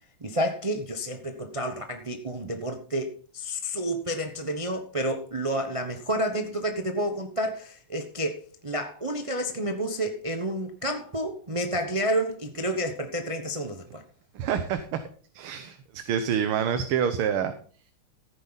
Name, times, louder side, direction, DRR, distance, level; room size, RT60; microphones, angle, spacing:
voice 1, 0.2-14.0, right 1 dB, 30° right, 0.6 m, -30 dB
voice 2, 14.4-15.0 15.3-17.5, right 8 dB, 80° right, 1.8 m, -27 dB
14.5 x 9.3 x 4.0 m
omnidirectional pair, 2.4 m